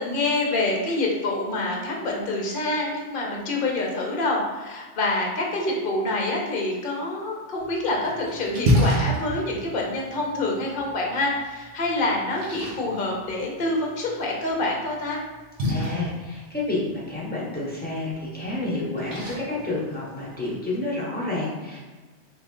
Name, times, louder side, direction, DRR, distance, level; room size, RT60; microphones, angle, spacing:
voice 1, 0.0-15.2, left 2 dB, 50° left, -1 dB, 0.9 m, -26 dB
Splash splatter, 7.6-20.6, equal, 75° right, 1.2 m, -31 dB
voice 2, 15.7-21.8, left 2 dB, 10° left, -7 dB, 1.0 m, -29 dB
3.3 x 3.2 x 3.7 m, 1.3 s
omnidirectional pair, 1.2 m